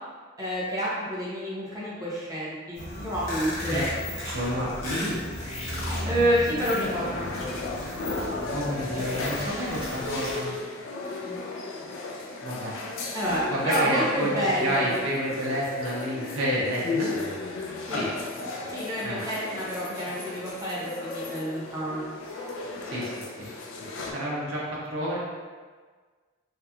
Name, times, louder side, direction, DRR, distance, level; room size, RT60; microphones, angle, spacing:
voice 1, 0.4-3.8 6.0-7.3 11.2-11.4 13.1-14.9 17.9-18.0 18.7-22.0, equal, 15° right, -8 dB, 0.7 m, -28 dB
sound 1, 2.7-10.4, left 1 dB, 85° left, 0.9 m, -34 dB
voice 2, 4.2-5.2 8.5-10.5 12.4-12.7 13.5-17.1 17.9-18.1 19.0-19.2 22.9-23.5 24.1-25.2, equal, 75° right, -5 dB, 0.6 m, -29 dB
sound 2, 6.8-24.1, left 3 dB, 65° left, 0.4 m, -35 dB
2.8 x 2.4 x 2.3 m, 1.5 s
head